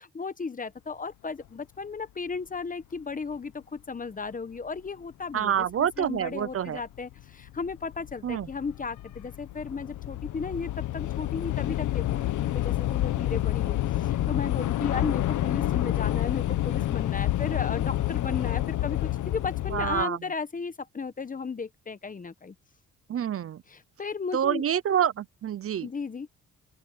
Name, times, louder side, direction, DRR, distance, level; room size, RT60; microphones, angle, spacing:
voice 1, 0.1-12.3 12.5-22.5 23.7-24.6 25.8-26.3, left 5 dB, 25° left, 1.2 m, -35 dB
voice 2, 5.3-6.8 8.2-8.5 19.7-20.2 23.1-23.6 24.3-25.9, right 9 dB, 50° right, 0.8 m, -27 dB
Train / Subway metro underground, 6.0-6.1 7.0-7.2 7.5-20.0, left 14 dB, 80° left, 1.5 m, -28 dB
open air
cardioid pair, 90°, 30 cm